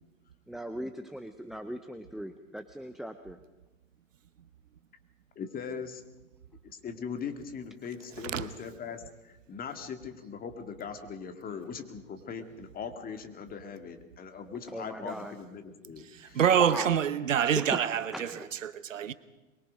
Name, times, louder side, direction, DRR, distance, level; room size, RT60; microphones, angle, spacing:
voice 1, 0.5-3.4 14.7-15.3 16.6-17.0 17.5-18.5, equal, ahead, 0.7 m, -39 dB
voice 2, 5.4-6.0 6.6-16.4, left 6 dB, 20° left, 2.3 m, -40 dB
voice 3, 16.2-18.3 18.6-19.1, right 9 dB, 65° right, 1.1 m, -26 dB
23.5 x 23.0 x 5.3 m
figure-of-eight pair, 100°, 41 cm